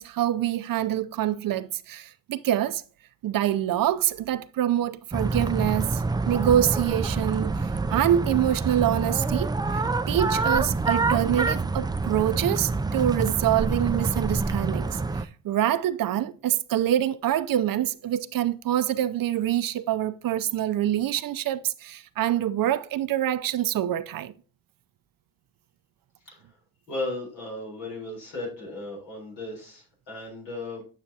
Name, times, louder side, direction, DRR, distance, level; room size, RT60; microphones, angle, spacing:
voice 1, 0.0-2.8 3.2-9.6 10.1-24.3, right 11 dB, 55° right, 0.5 m, -25 dB
sound 1, 5.1-15.2, right 3 dB, 10° right, 0.3 m, -27 dB
voice 2, 26.9-30.8, left 2 dB, 90° left, 3.7 m, -35 dB
8.8 x 5.7 x 2.7 m
supercardioid pair, 55°, 40 cm